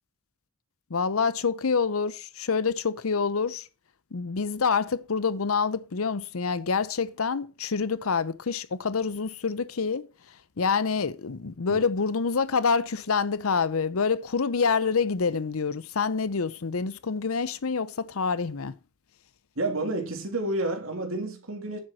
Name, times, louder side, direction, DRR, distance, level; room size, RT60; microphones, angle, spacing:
voice 1, 0.9-3.7 4.1-10.1 10.6-18.7, left 5 dB, 90° left, 0.7 m, -27 dB
voice 2, 19.6-21.8, right 2 dB, 80° right, 2.8 m, -30 dB
10.0 x 7.7 x 4.6 m
head